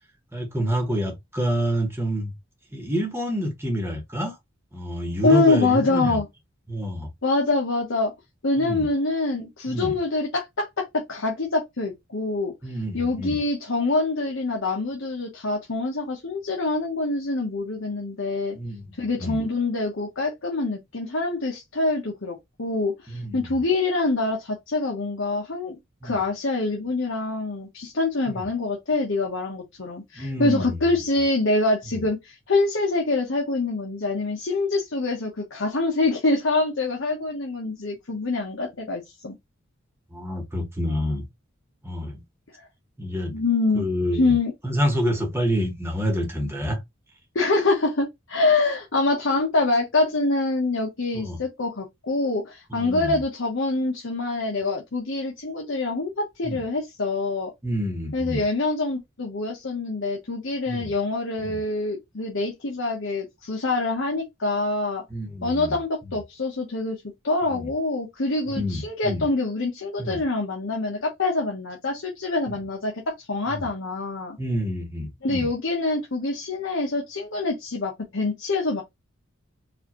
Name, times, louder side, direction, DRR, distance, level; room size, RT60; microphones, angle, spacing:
voice 1, 0.3-2.3 2.7-4.4 4.7-6.2 6.7-7.1 8.6-8.9 9.7-10.0 12.6-13.4 18.5-18.9 19.2-19.4 23.1-23.5 26.0-26.2 28.3-28.4 30.1-30.8 31.9-32.0 40.1-41.3 41.8-42.2 43.0-43.4 43.7-44.3 44.6-46.8 51.1-51.4 52.7-53.2 56.4-56.6 57.6-58.4 60.7-60.9 61.5-61.6 65.1-65.8 67.5-67.7 68.5-69.2 70.0-70.2 72.5-72.6 73.5-73.7 74.4-75.5, equal, 10° right, 1.3 m, -28 dB
voice 2, 5.2-6.3 7.2-8.1 8.4-12.5 12.9-18.6 19.0-39.3 42.6-42.7 43.3-43.9 44.2-44.5 47.3-57.5 58.1-65.0 65.4-74.4 75.2-78.8, left 3 dB, 65° left, 1.0 m, -25 dB
4.7 x 2.6 x 3.0 m
head